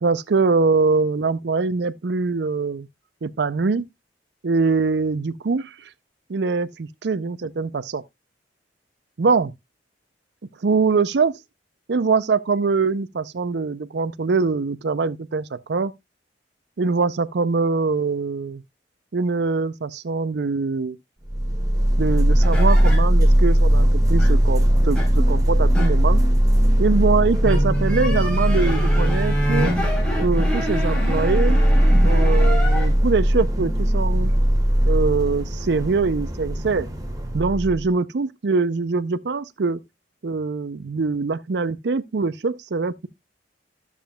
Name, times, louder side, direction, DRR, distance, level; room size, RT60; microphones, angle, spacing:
voice 1, 0.0-2.9 3.2-3.9 4.4-5.9 6.3-8.0 9.2-9.5 10.6-11.4 11.9-15.9 16.8-18.6 19.1-21.0 22.0-26.2 26.8-29.7 30.2-31.6 32.0-34.3 34.8-36.9 37.3-39.8 40.2-43.1, right 4 dB, 65° right, 0.5 m, -23 dB
sound 1, 21.3-37.8, equal, 20° right, 1.7 m, -19 dB
sound 2, 22.4-23.0 24.2-24.4 25.0-25.1 25.7-25.9 27.3-32.9, equal, 5° left, 3.8 m, -27 dB
12.5 x 7.2 x 2.3 m
head